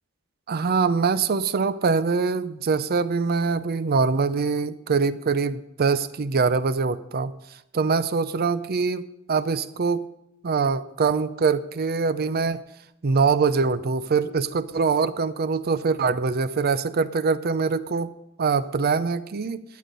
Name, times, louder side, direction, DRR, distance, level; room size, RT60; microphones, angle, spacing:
voice 1, 0.5-7.3 7.7-10.0 10.4-12.6 13.0-18.1 18.4-19.6, right 4 dB, 50° right, 14 dB, 0.5 m, -23 dB
13.0 x 8.5 x 5.2 m, 0.83 s
head